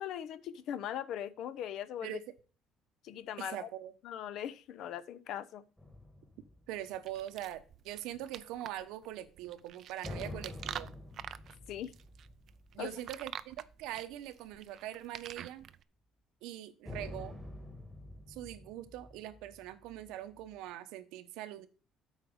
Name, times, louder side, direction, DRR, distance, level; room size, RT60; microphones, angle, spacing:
voice 1, 0.0-2.2 3.0-3.7 4.0-5.6 11.7-11.9 12.8-12.9, left 10 dB, 55° left, 0.6 m, -40 dB
voice 2, 3.4-3.9 6.7-10.9 12.7-15.7 16.4-17.4 18.3-21.7, right 13 dB, 85° right, 1.0 m, -42 dB
sound 1, 5.8-7.7 10.0-13.8 14.1-14.2 16.9-20.5, left 1 dB, 5° left, 1.5 m, -48 dB
sound 2, 7.1-15.8, right 10 dB, 45° right, 0.4 m, -46 dB
8.4 x 4.9 x 6.2 m
cardioid pair, 160°, 0 cm